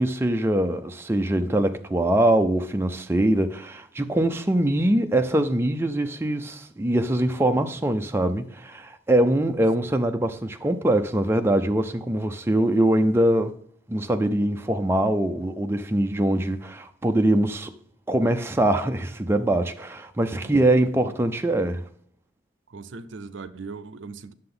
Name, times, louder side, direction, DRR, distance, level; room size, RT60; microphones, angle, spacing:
voice 1, 0.0-13.5 13.9-17.7 18.1-21.8, right 1 dB, 10° right, 0.4 m, -23 dB
voice 2, 22.7-24.3, right 4 dB, 70° right, 0.5 m, -39 dB
9.6 x 6.8 x 3.7 m
head